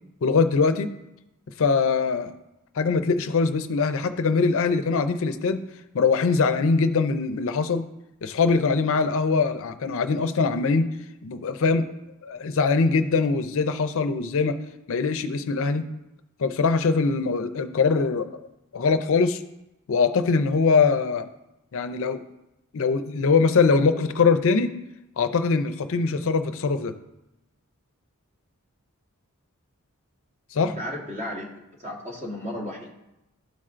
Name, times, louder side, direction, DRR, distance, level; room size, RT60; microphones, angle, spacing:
voice 1, 0.2-0.9 1.6-2.3 2.8-5.6 5.9-7.8 8.2-10.9 11.2-11.8 12.2-14.5 14.9-15.9 16.4-18.4 18.7-19.4 19.9-21.3 21.7-22.2 22.7-24.7 25.2-26.9 30.5-30.7, left 4 dB, 65° left, 9 dB, 0.5 m, -22 dB
voice 2, 30.8-31.5 31.8-32.9, left 1 dB, 30° right, -2 dB, 1.4 m, -33 dB
12.5 x 4.3 x 2.5 m, 0.91 s
head